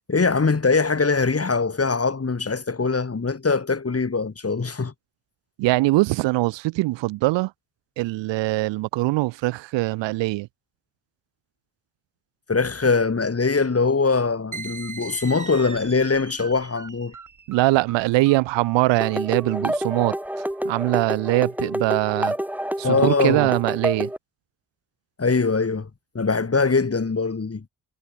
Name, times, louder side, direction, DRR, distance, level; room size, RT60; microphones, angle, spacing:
voice 1, 0.1-4.9 12.5-17.1 22.8-23.5 25.2-25.9 26.1-27.6, left 4 dB, 30° left, 4.9 m, -22 dB
voice 2, 5.6-7.5 8.0-10.5 17.5-20.2 20.6-22.3 22.8-24.1, right 20 dB, 65° right, 0.9 m, -22 dB
sound 1, 14.5-21.8, right 5 dB, 40° right, 6.0 m, -41 dB
sound 2, 19.0-24.2, equal, 5° right, 3.4 m, -28 dB
hypercardioid pair, 40°, 48 cm